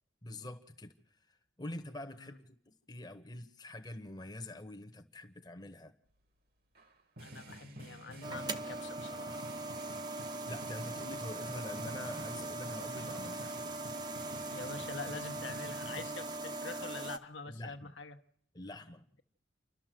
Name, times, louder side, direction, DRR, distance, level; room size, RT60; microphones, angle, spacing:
voice 1, 0.2-0.9 1.6-5.9 9.9-10.1 10.5-13.6 17.5-17.9 18.5-19.0, left 1 dB, 20° left, 1.0 m, -45 dB
voice 2, 2.0-2.4 7.2-9.5 14.5-18.2, left 4 dB, 75° left, 1.1 m, -45 dB
sound 1, 6.8-16.2, right 1 dB, 50° right, 1.4 m, -50 dB
sound 2, 8.2-17.2, right 2 dB, 20° right, 0.8 m, -40 dB
29.0 x 12.5 x 7.7 m
head